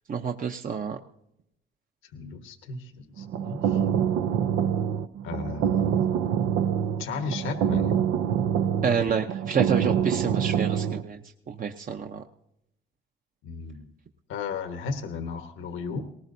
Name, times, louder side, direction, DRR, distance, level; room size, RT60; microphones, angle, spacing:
voice 1, 0.1-1.0 8.8-11.2 11.5-12.2, right 6 dB, 45° right, 4 dB, 0.8 m, -28 dB
voice 2, 2.0-3.8 5.2-6.0 7.0-8.0 13.4-13.9 14.3-16.0, left 5 dB, 85° left, 7 dB, 1.2 m, -35 dB
sound 1, 3.2-11.0, right 8 dB, 90° right, 0.7 m, -25 dB
19.0 x 18.5 x 2.7 m, 0.80 s
cardioid pair, 90°, 20 cm